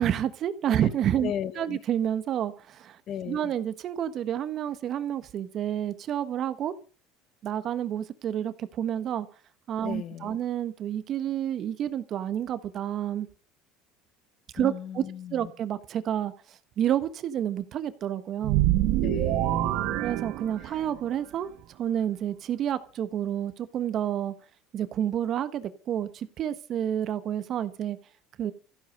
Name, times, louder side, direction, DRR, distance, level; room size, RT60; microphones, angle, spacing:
voice 1, 0.0-3.0 3.2-6.7 7.4-9.3 9.7-13.3 14.5-15.0 15.3-18.7 20.0-21.5 21.8-24.3 24.7-28.0 28.4-28.5, right 10 dB, 40° right, 1.4 m, -29 dB
voice 2, 1.2-1.8 3.1-3.5 9.8-10.4 14.6-15.5 19.0-20.0 20.6-20.8, left 9 dB, 40° left, 1.1 m, -36 dB
sound 1, 18.4-21.0, right 15 dB, 60° right, 1.1 m, -26 dB
15.0 x 12.5 x 6.7 m
cardioid pair, 150°, 0 cm